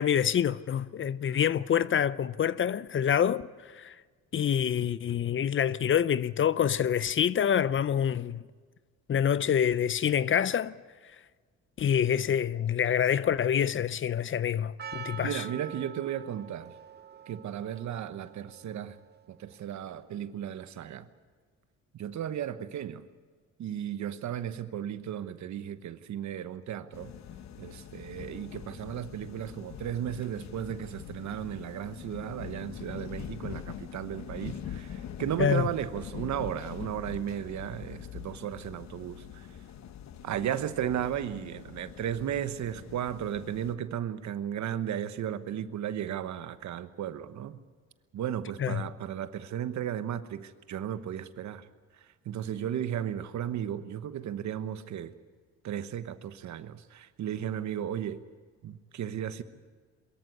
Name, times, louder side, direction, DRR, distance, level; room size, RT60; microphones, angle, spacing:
voice 1, 0.0-3.5 3.7-4.0 4.3-8.4 9.1-10.8 11.8-15.4 35.4-35.7 48.6-48.8, left 9 dB, 40° left, 0.6 m, -26 dB
Percussion, 14.8-20.0, right 7 dB, 35° right, 0.6 m, -46 dB
voice 2, 15.2-16.7 17.3-19.0 19.3-21.1 21.9-23.0 23.6-27.1 27.6-39.5 40.2-47.6 48.1-51.7 52.2-55.1 55.6-58.2 58.6-59.4, right 10 dB, 70° right, 1.1 m, -35 dB
Interior of a subway car (vagón de metro), 26.9-43.7, left 9 dB, 65° left, 1.2 m, -43 dB
22.5 x 14.0 x 9.7 m
cardioid pair, 90°, 30 cm